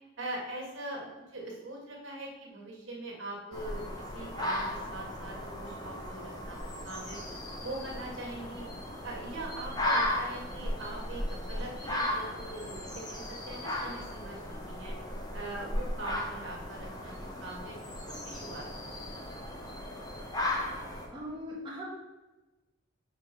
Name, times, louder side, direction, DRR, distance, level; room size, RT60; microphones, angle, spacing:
voice 1, 0.2-1.1 1.3-3.8 4.1-6.6 6.8-7.2 7.6-8.7 9.0-11.2 11.5-14.9 15.3-17.1 17.4-17.7 18.1-19.4, right 1 dB, 65° right, -2 dB, 1.8 m, -42 dB
sound 1, 3.5-21.1, left 1 dB, 20° left, 0.9 m, -36 dB
voice 2, 21.1-21.8, equal, 20° right, -6 dB, 1.4 m, -40 dB
6.1 x 4.9 x 4.5 m, 1.1 s
head